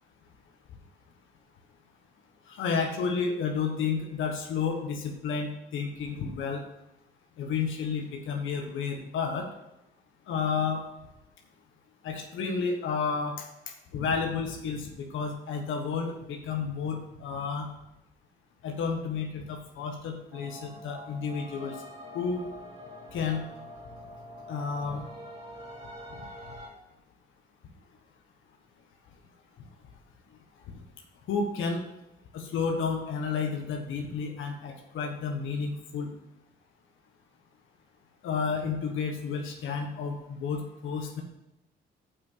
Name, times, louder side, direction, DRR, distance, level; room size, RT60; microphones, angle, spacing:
voice 1, 2.5-6.6 7.4-9.5 10.3-10.8 12.0-13.4 13.9-17.7 18.6-21.7 22.1-22.4 23.1-23.4 24.5-25.0 31.3-31.8 32.3-36.1 38.2-41.2, left 5 dB, 80° left, 2 dB, 1.4 m, -31 dB
sound 1, 20.3-26.7, left 1 dB, 30° right, 3.9 m, -45 dB
7.1 x 5.9 x 6.8 m, 0.88 s
cardioid pair, 90°, 20 cm